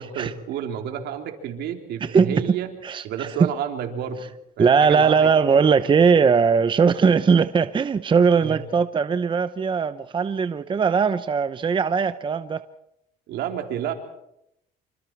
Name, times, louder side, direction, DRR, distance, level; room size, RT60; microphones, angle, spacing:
voice 1, 0.0-2.7 3.0-4.2 4.6-5.7 6.0-6.3 8.4-8.7 13.3-13.9, right 9 dB, 80° right, 3.5 m, -30 dB
voice 2, 2.0-2.4 2.8-3.3 4.6-12.6, right 5 dB, 30° right, 0.8 m, -19 dB
26.5 x 26.5 x 4.6 m
cardioid pair, 110°, 17 cm